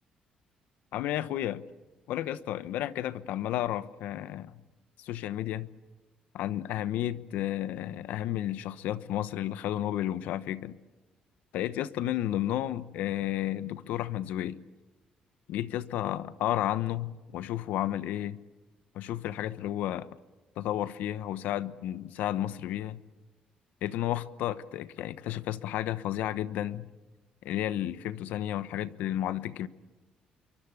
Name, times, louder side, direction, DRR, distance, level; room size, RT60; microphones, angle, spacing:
voice 1, 0.9-1.6 2.1-4.6 5.0-5.7 6.3-10.8 11.5-14.6 15.5-18.4 18.9-20.1 20.6-23.0 23.8-26.9 27.4-29.7, left 12 dB, 85° left, 14 dB, 1.0 m, -32 dB
27.5 x 23.5 x 8.4 m, 1.1 s
cardioid pair, 115°, 3 cm